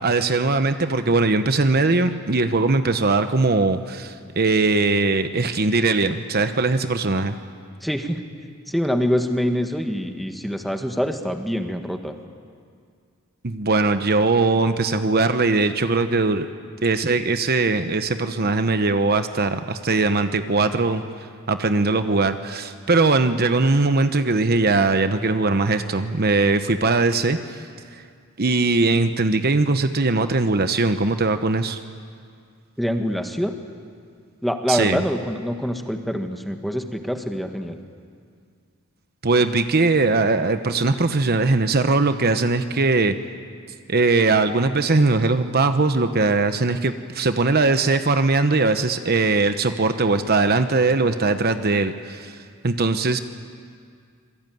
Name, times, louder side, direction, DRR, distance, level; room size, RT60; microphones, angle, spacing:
voice 1, 0.0-7.4 13.4-16.5 16.8-21.0 21.5-27.4 28.4-31.8 34.7-35.0 39.2-43.2 43.9-52.3 52.6-53.2, right 3 dB, 50° right, 9 dB, 1.0 m, -20 dB
voice 2, 7.8-8.2 8.7-12.1 32.8-33.5 34.4-37.8, equal, ahead, 5 dB, 1.6 m, -25 dB
27.0 x 22.5 x 9.4 m, 2.1 s
head